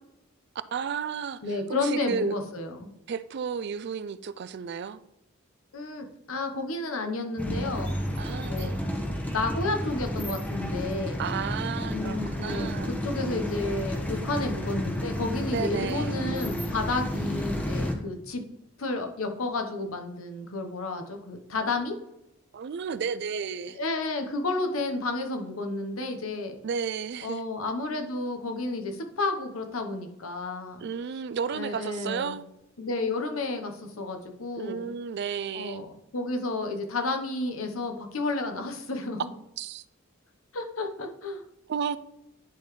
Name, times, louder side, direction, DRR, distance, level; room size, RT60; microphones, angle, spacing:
voice 1, 0.7-1.4 1.8-2.3 3.1-5.0 8.2-8.8 11.2-12.9 15.5-16.2 22.5-23.8 26.6-27.4 30.8-32.4 34.5-35.9 39.6-39.8 41.7-42.0, right 6 dB, 55° right, 0.3 m, -32 dB
voice 2, 1.4-2.9 5.7-8.0 8.4-11.2 11.9-18.4 18.8-22.0 23.8-26.6 27.2-30.9 31.5-32.4 32.8-34.9 35.5-39.3 40.5-41.4, left 3 dB, 90° left, 1.0 m, -31 dB
sound 1, 7.4-17.9, equal, 5° left, 0.8 m, -31 dB
10.5 x 3.9 x 3.2 m
head